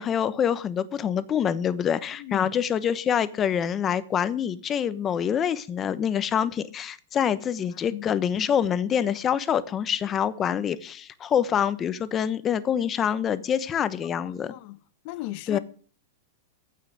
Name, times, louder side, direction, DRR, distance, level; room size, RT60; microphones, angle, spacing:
voice 1, 0.0-14.5 15.5-15.6, left 8 dB, 20° left, 1.0 m, -26 dB
voice 2, 2.2-2.5 7.9-8.1 14.2-14.8 15.0-15.6, left 16 dB, 45° left, 1.1 m, -37 dB
15.5 x 5.8 x 9.8 m
supercardioid pair, 150°, 0 cm